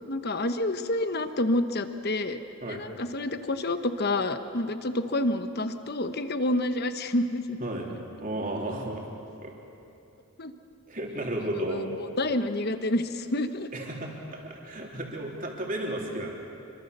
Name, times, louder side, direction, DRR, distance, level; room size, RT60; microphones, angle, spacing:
voice 1, 0.1-2.4 2.7-7.6 10.4-10.5 11.5-13.7, left 1 dB, 45° left, 9 dB, 1.1 m, -28 dB
voice 2, 8.2-9.1 9.4-9.5 10.9-11.9 13.7-16.3, right 1 dB, 40° right, -1 dB, 3.5 m, -33 dB
26.5 x 24.0 x 6.8 m, 2.7 s
head